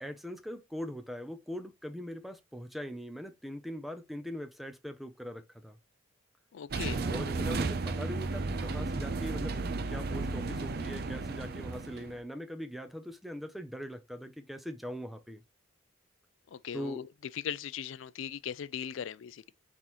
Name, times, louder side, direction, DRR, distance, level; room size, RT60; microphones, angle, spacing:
voice 1, 0.0-5.8 7.1-15.4 16.7-17.0, equal, ahead, 0.6 m, -41 dB
voice 2, 6.5-7.0 16.5-17.1 17.3-19.5, left 8 dB, 75° left, 0.4 m, -39 dB
sound 1, 6.7-12.2, right 3 dB, 50° right, 0.5 m, -34 dB
4.2 x 3.8 x 3.1 m
head